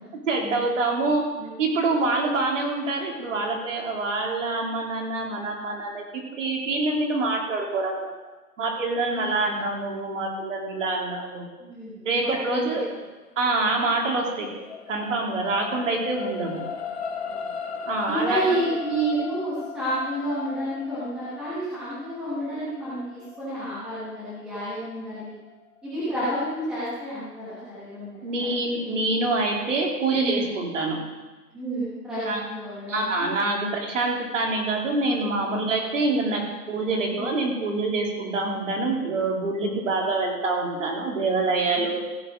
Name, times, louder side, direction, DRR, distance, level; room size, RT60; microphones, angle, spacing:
voice 1, 0.1-1.2 1.6-8.1 8.6-11.5 12.0-12.8 13.4-14.5 14.9-16.6 17.9-18.6 28.2-31.0 32.2-32.4 32.9-42.0, right 3 dB, 50° right, 0 dB, 2.9 m, -26 dB
voice 2, 11.6-12.8 17.4-17.5 18.1-25.3 25.8-28.5 28.9-29.0 30.1-30.4 31.5-33.3 33.5-33.7 35.6-35.7 37.1-37.3 39.7-39.8, right 1 dB, ahead, -12 dB, 1.1 m, -30 dB
sound 1, 13.9-26.4 26.9-27.0, left 6 dB, 40° left, 1.0 m, -38 dB
16.0 x 7.6 x 5.1 m, 1.2 s
hypercardioid pair, 175°, 48 cm